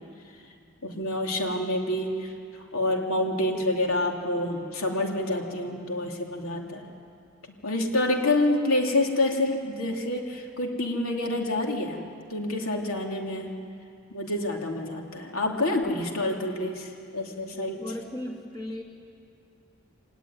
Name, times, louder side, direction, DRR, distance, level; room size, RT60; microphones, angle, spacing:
voice 1, 0.8-7.0 7.6-12.0 12.3-13.6 14.1-17.8, left 1 dB, 85° left, 1 dB, 3.1 m, -27 dB
voice 2, 17.8-18.8, left 1 dB, 20° left, 0 dB, 2.8 m, -36 dB
24.5 x 19.0 x 9.8 m, 2.4 s
head